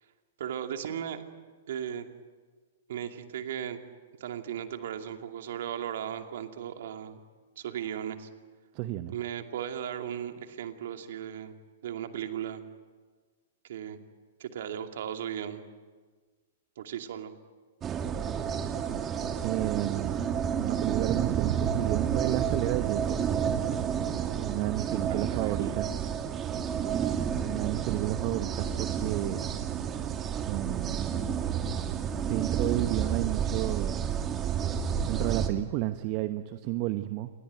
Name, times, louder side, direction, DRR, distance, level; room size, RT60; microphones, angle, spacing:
voice 1, 0.4-1.2 1.7-2.1 2.9-3.8 4.2-7.2 7.6-8.3 9.1-11.5 11.8-12.6 13.6-14.0 14.4-15.6 16.8-17.3 24.9-25.8, right 9 dB, 60° right, 6 dB, 2.5 m, -36 dB
voice 2, 8.7-9.1 19.4-20.3 20.6-23.2 24.4-26.0 27.4-29.5 30.5-31.1 32.2-34.0 35.0-37.3, right 16 dB, 40° right, 10 dB, 1.0 m, -32 dB
sound 1, 17.8-35.5, right 8 dB, 25° right, 2.4 m, -30 dB
27.5 x 21.5 x 9.2 m, 1.4 s
figure-of-eight pair, 110°, 0 cm